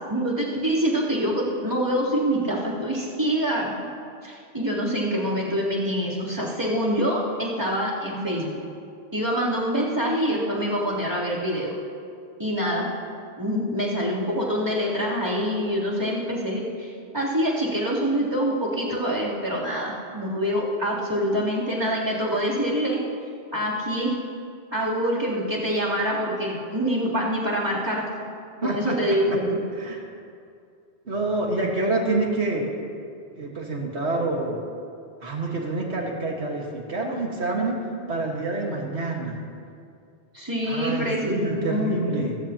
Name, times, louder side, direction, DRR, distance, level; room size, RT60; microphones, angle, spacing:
voice 1, 0.1-3.9 4.2-8.5 9.1-11.8 12.4-12.9 13.4-23.0 23.5-24.2 24.7-28.0 28.6-29.6 40.3-42.2, equal, 25° right, -7 dB, 3.4 m, -25 dB
voice 2, 28.6-29.0 29.8-30.0 31.1-32.7 33.4-34.6 35.2-39.4 40.7-42.4, right 2 dB, 85° right, -1 dB, 2.0 m, -27 dB
28.0 x 15.0 x 2.9 m, 2.4 s
omnidirectional pair, 1.1 m